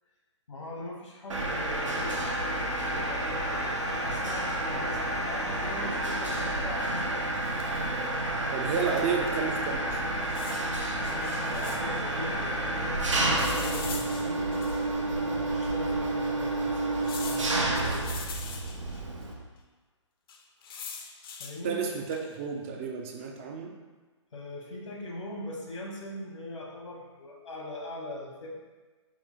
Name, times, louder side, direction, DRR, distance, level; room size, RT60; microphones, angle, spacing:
voice 1, 0.5-7.3 11.0-14.6 15.1-16.8 17.2-18.1 21.4-21.8 24.3-28.6, left 1 dB, 80° left, -2 dB, 1.2 m, -41 dB
Mechanisms, 1.3-19.3, right 1 dB, 90° right, 0.8 m, -30 dB
sound 1, 7.3-8.0 9.0-9.1 9.3-9.4 10.2-12.0 13.4-15.0 15.6-15.7 17.0-19.0 20.3-21.6 22.1-22.4, left 5 dB, 50° left, 0.5 m, -42 dB
voice 2, 8.5-10.0 21.6-23.7, right 6 dB, 25° right, 2 dB, 0.4 m, -31 dB
5.0 x 2.0 x 3.6 m, 1.3 s
hypercardioid pair, 140°, 16 cm